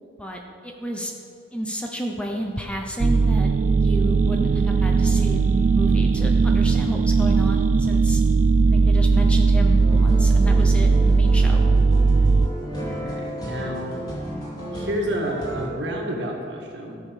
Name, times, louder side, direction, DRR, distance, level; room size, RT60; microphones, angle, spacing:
voice 1, 0.2-1.1 1.5-3.5 3.8-8.2 8.7-11.6, equal, 5° left, 1 dB, 0.8 m, -31 dB
sound 1, 3.0-12.5, right 4 dB, 40° right, 0.3 m, -18 dB
sound 2, 9.8-15.7, equal, 25° left, 2.4 m, -33 dB
voice 2, 12.7-14.0 14.7-17.0, right 1 dB, 65° right, 0 dB, 1.7 m, -30 dB
13.5 x 6.5 x 5.2 m, 2.6 s
head